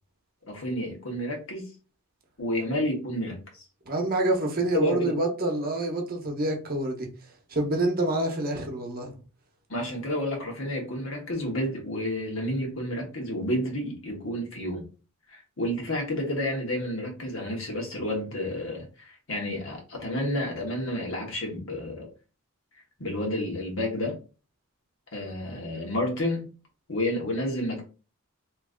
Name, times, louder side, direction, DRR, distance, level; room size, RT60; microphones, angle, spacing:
voice 1, 0.4-1.7 2.4-3.6 4.7-5.2 9.7-14.9 15.3-22.1 23.0-24.2 25.1-26.5 26.9-27.8, left 1 dB, 60° left, 1.3 m, -30 dB
voice 2, 3.9-7.1 7.5-9.2, right 1 dB, 40° right, 0.9 m, -27 dB
3.0 x 2.6 x 3.7 m
head